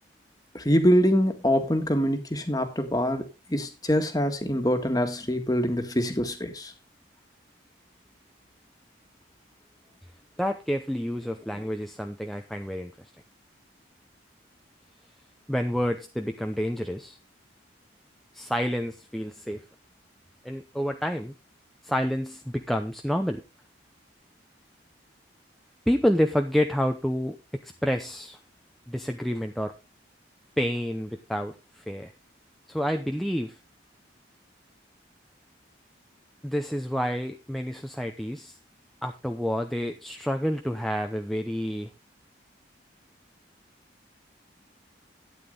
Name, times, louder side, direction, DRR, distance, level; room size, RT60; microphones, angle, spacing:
voice 1, 0.5-3.2 3.5-6.7, equal, 20° left, 1.7 m, -24 dB
voice 2, 10.4-12.9 15.5-17.2 18.3-19.6 20.4-21.3 21.8-23.4 25.9-27.4 27.6-28.4 28.9-29.7 30.6-32.1 32.7-33.6 36.4-38.6 39.0-41.9, equal, ahead, 0.7 m, -28 dB
12.0 x 9.3 x 3.9 m
head